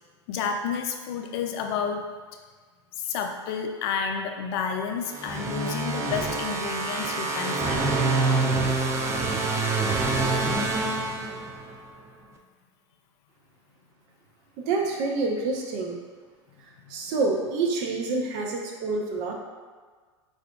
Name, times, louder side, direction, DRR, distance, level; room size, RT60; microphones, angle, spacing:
voice 1, 0.3-2.1 3.0-8.0 11.3-11.4 16.9-17.0, left 6 dB, 60° left, 4 dB, 0.4 m, -30 dB
sound 1, 5.1-11.8, right 3 dB, 20° right, 0.4 m, -26 dB
voice 2, 14.6-16.0 16.9-19.3, right 3 dB, 55° right, 1 dB, 0.7 m, -27 dB
4.8 x 2.5 x 2.3 m, 1.5 s
hypercardioid pair, 100°, 15 cm